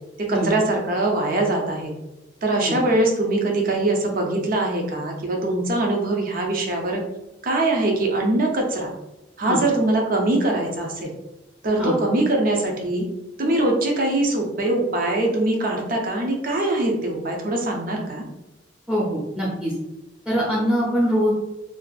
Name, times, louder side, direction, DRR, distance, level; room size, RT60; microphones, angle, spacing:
voice 1, 0.2-1.9 2.4-7.0 7.4-8.9 9.4-11.1 11.6-13.1 13.4-18.2, right 2 dB, 50° right, 1 dB, 0.5 m, -22 dB
voice 2, 18.9-19.7 20.3-21.3, equal, ahead, -7 dB, 0.5 m, -23 dB
2.6 x 2.3 x 2.3 m, 0.97 s
head